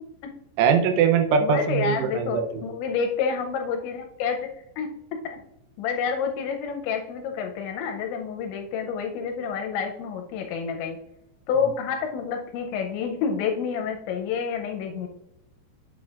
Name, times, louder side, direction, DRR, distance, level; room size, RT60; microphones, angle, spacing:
voice 1, 0.6-2.4, right 6 dB, 80° right, 5 dB, 3.0 m, -21 dB
voice 2, 1.4-4.5 4.8-4.9 5.2-5.4 5.8-11.0 11.5-15.1, left 6 dB, 80° left, 3 dB, 2.7 m, -28 dB
8.8 x 8.1 x 2.4 m, 0.90 s
omnidirectional pair, 5.7 m